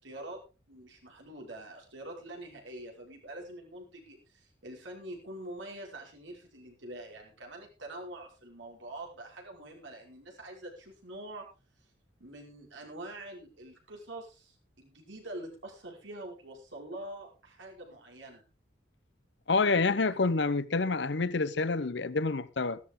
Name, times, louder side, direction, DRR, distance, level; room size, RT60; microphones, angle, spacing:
voice 1, 0.0-0.4 0.7-11.5 12.2-18.4 20.0-20.1, right 1 dB, 85° right, 5.2 m, -45 dB
voice 2, 19.5-22.8, left 3 dB, 70° left, 0.8 m, -28 dB
15.5 x 13.0 x 3.7 m
head